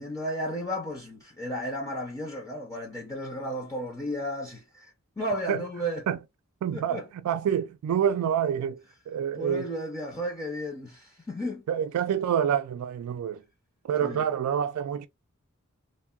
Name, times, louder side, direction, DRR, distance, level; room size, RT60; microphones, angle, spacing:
voice 1, 0.0-6.1 6.7-7.1 9.3-11.6 14.0-14.3, equal, 15° left, 0.5 m, -34 dB
voice 2, 6.6-8.8 9.1-9.7 11.7-13.4 13.8-15.1, right 8 dB, 85° right, 0.3 m, -27 dB
3.4 x 2.1 x 2.3 m
head